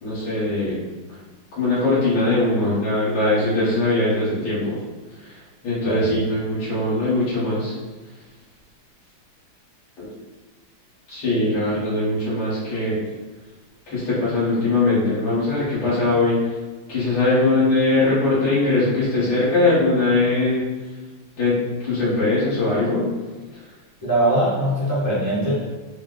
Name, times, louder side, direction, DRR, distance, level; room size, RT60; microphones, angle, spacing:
voice 1, 0.0-0.8 1.6-4.8 5.2-5.4 5.6-7.7 10.0-10.1 11.1-13.0 13.9-16.4 16.9-20.7 21.4-21.6 21.8-23.1, left 2 dB, 65° left, -10 dB, 1.9 m, -21 dB
voice 2, 24.0-25.5, right 1 dB, 20° right, -10 dB, 0.4 m, -21 dB
4.5 x 2.0 x 3.7 m, 1.3 s
omnidirectional pair, 2.4 m